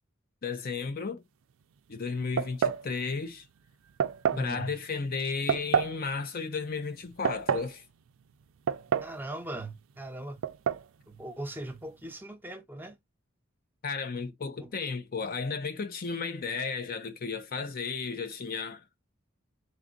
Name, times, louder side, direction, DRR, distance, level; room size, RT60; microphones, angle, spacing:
voice 1, 0.4-1.2 1.9-3.5 4.4-7.8 13.8-18.8, left 4 dB, 45° left, 0.5 m, -34 dB
sound 1, 2.4-2.9 4.0-4.5 5.5-6.0 7.0-7.7 8.7-9.2 9.5-9.6 10.4-10.9, right 7 dB, 70° right, 0.4 m, -28 dB
voice 2, 4.3-4.7 9.0-10.4 11.1-13.0 14.6-14.7, right 1 dB, 10° right, 0.8 m, -40 dB
3.5 x 2.3 x 3.8 m
head